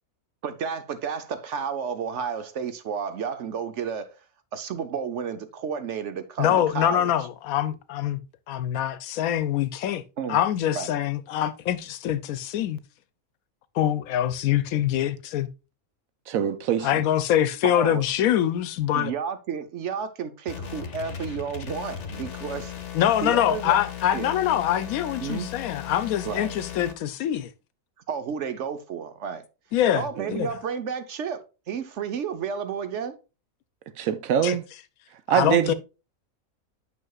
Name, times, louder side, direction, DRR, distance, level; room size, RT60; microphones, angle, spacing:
voice 1, 0.4-4.2 4.5-7.1 10.2-10.4 10.7-10.9 17.6-18.0 18.9-22.7 23.2-23.8 24.1-24.3 25.2-25.5 26.2-26.5 28.1-29.4 29.9-33.2, right 6 dB, 60° right, 1.0 m, -31 dB
voice 2, 6.4-8.2 8.5-10.0 10.3-12.8 13.7-15.5 16.8-19.1 22.9-27.5 29.7-30.5 34.4-34.6 35.3-35.7, left 11 dB, 80° left, 1.1 m, -24 dB
voice 3, 16.3-16.9 30.2-30.3 34.0-34.6 35.3-35.7, right 9 dB, 80° right, 1.1 m, -23 dB
sound 1, 20.5-26.9, left 9 dB, 60° left, 1.2 m, -37 dB
9.3 x 5.7 x 2.3 m
omnidirectional pair, 1.5 m